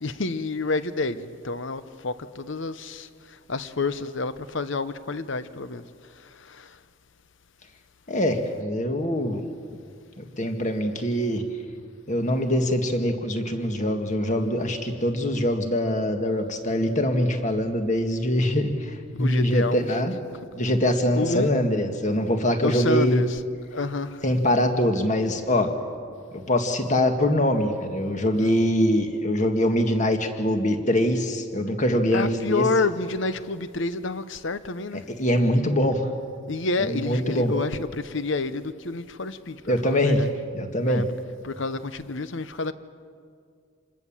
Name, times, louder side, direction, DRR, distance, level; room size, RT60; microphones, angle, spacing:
voice 1, 0.0-5.8 6.2-6.8 19.2-20.0 21.1-21.5 22.6-23.4 23.7-24.2 28.3-28.6 32.1-35.0 36.5-40.3 40.8-41.1 41.4-42.7, left 3 dB, 55° left, 0.9 m, -29 dB
voice 2, 8.1-9.4 10.2-11.4 12.1-20.1 20.5-23.2 24.2-25.7 26.3-32.7 35.2-36.1 36.8-37.5 39.7-40.2 40.5-41.0, left 1 dB, 35° left, 1.9 m, -23 dB
27.5 x 20.5 x 7.4 m
head